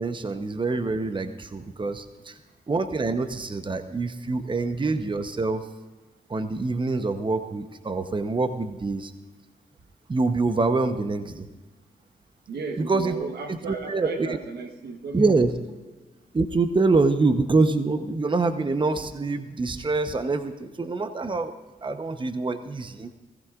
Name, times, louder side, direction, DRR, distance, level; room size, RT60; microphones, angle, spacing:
voice 1, 0.0-2.4 2.7-5.6 6.3-9.1 10.1-11.5 12.8-13.1 13.5-14.3 15.1-15.5 16.3-21.5 21.8-23.1, right 3 dB, 30° right, 9 dB, 0.9 m, -25 dB
voice 2, 12.5-15.4, right 4 dB, 75° right, 5 dB, 1.2 m, -34 dB
18.0 x 15.5 x 2.5 m, 1.2 s
supercardioid pair, 45°, 17 cm